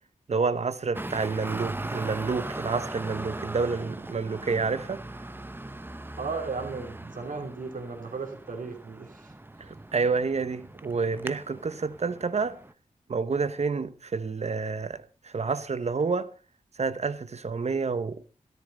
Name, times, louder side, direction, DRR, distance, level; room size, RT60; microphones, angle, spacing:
voice 1, 0.3-5.0 9.6-12.6 13.1-16.3 16.8-18.2, right 4 dB, 55° right, 1.0 m, -29 dB
Traffic noise roadway noise, 0.9-12.7, right 2 dB, 15° right, 0.8 m, -39 dB
voice 2, 6.2-9.3, right 4 dB, 85° right, 3.0 m, -35 dB
13.5 x 13.5 x 3.9 m
wide cardioid pair, 90°, 13 cm